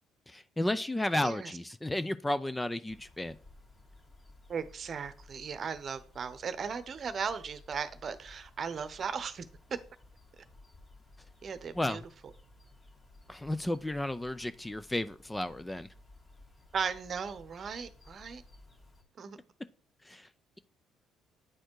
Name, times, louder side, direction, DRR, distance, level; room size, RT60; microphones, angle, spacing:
voice 1, 0.3-3.4 11.7-12.0 13.3-15.9 20.0-20.3, left 1 dB, 10° left, 12 dB, 0.5 m, -33 dB
sound 1, 2.9-19.0, left 2 dB, 35° left, 2.3 m, -57 dB
voice 2, 4.5-9.5 11.4-12.0 16.7-18.4 19.2-19.4, right 6 dB, 45° right, 12 dB, 0.9 m, -37 dB
9.1 x 4.3 x 4.7 m, 0.42 s
supercardioid pair, 70°, 0 cm